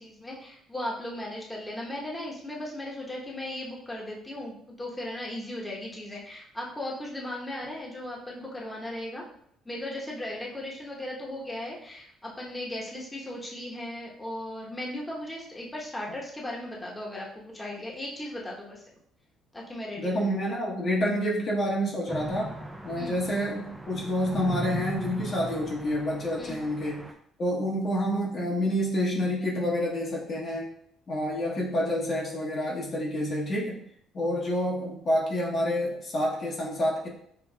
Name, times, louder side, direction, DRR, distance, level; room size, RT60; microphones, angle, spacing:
voice 1, 0.0-9.2 9.6-18.8 19.5-20.3 22.9-23.2 26.4-26.6, left 1 dB, 15° left, -3 dB, 1.0 m, -37 dB
voice 2, 20.0-22.5 22.8-27.1 27.4-30.7 31.1-33.8 34.1-37.1, equal, 50° left, -4 dB, 1.0 m, -28 dB
sound 1, 22.1-27.1, right 1 dB, 10° right, 0.5 m, -38 dB
5.7 x 2.2 x 2.3 m, 0.67 s
supercardioid pair, 70°, 0 cm